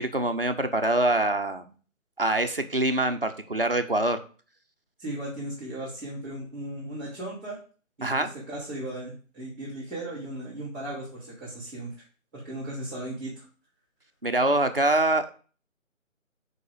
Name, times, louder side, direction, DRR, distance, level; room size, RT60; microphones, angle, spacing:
voice 1, 0.0-1.6 2.2-4.2 8.0-8.3 14.2-15.3, right 1 dB, 45° right, 7 dB, 0.6 m, -24 dB
voice 2, 5.0-7.6 8.0-11.9 12.3-13.5, right 1 dB, 10° right, -8 dB, 2.0 m, -36 dB
4.7 x 4.2 x 4.9 m, 0.39 s
figure-of-eight pair, 180°, 41 cm